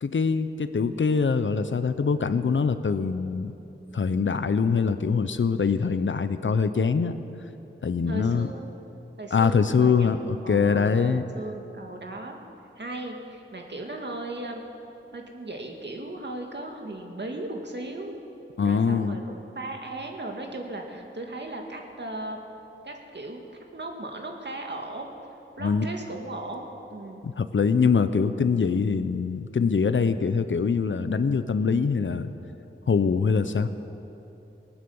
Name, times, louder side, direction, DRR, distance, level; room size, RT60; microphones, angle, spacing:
voice 1, 0.0-3.5 3.9-7.1 7.8-8.5 9.3-11.2 18.6-19.2 25.6-25.9 27.2-32.3 32.9-33.7, left 5 dB, 65° left, 11 dB, 0.7 m, -23 dB
voice 2, 8.1-8.6 9.2-12.4 12.8-14.6 15.1-18.2 18.6-22.4 22.8-23.4 23.7-25.1 25.6-27.2, right 2 dB, 55° right, 2 dB, 2.0 m, -37 dB
19.0 x 9.6 x 7.1 m, 2.9 s
cardioid pair, 45°, 21 cm